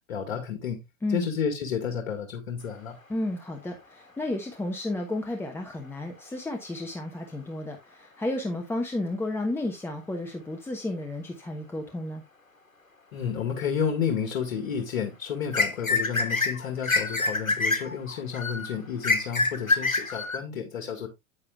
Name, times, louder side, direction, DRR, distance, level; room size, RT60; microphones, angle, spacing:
voice 1, 0.1-0.8 1.1-3.0 13.1-21.1, left 7 dB, 55° left, 2.0 m, -31 dB
voice 2, 3.1-12.2, left 1 dB, 5° left, 1.1 m, -32 dB
sound 1, 15.5-20.4, left 3 dB, 85° left, 1.2 m, -26 dB
9.6 x 8.8 x 2.4 m
figure-of-eight pair, 95°, 40 cm